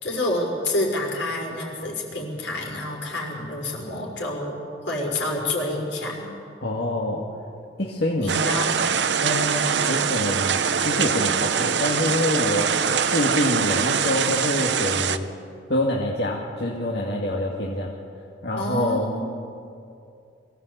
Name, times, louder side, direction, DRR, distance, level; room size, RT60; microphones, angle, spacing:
voice 1, 0.0-4.6 4.8-6.3 8.2-8.8 18.6-19.2, left 1 dB, 80° left, -1 dB, 5.4 m, -28 dB
voice 2, 6.6-7.3 7.8-8.4 9.2-12.7 13.1-15.3 15.7-17.9 18.4-19.1, left 1 dB, 60° left, -3 dB, 2.2 m, -26 dB
sound 1, 8.3-15.2, right 7 dB, 70° right, 0.8 m, -23 dB
23.0 x 16.5 x 8.2 m, 2.5 s
head